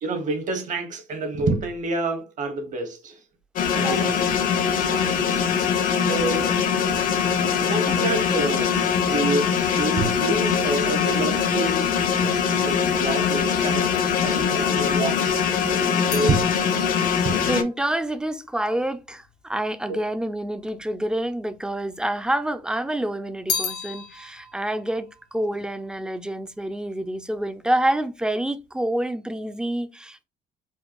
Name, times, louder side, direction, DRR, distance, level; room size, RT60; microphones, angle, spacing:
voice 1, 0.0-3.2 3.7-4.2 4.9-5.3 6.0-6.5 7.6-11.9 12.6-13.9 14.2-16.7 17.2-17.4 19.9-20.0, right 2 dB, 50° right, 0.9 m, -28 dB
sound 1, 3.6-17.6, left 7 dB, 55° left, 0.5 m, -22 dB
voice 2, 3.8-4.1 4.9-5.2 6.5-6.6 16.9-30.2, right 1 dB, 5° right, 0.3 m, -28 dB
sound 2, 16.1-19.6 20.3-21.1 21.4-22.6 22.9-26.4 26.7-27.2, left 6 dB, 85° left, 1.0 m, -36 dB
4.4 x 2.3 x 2.3 m
cardioid pair, 110°, 17 cm